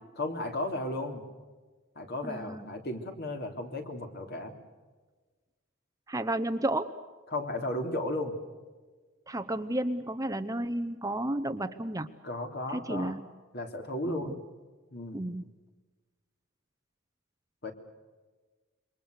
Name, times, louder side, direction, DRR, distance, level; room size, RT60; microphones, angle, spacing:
voice 1, 0.2-1.2 2.0-4.5 7.3-8.4 12.2-13.1 13.5-14.3 14.9-15.3 17.6-17.7, left 1 dB, 50° left, 4 dB, 3.5 m, -34 dB
voice 2, 2.2-2.6 6.1-6.9 9.3-12.1 12.7-13.3 14.1-14.3 15.1-15.4, right 1 dB, 15° right, 11 dB, 0.8 m, -32 dB
27.5 x 24.0 x 6.6 m, 1.3 s
head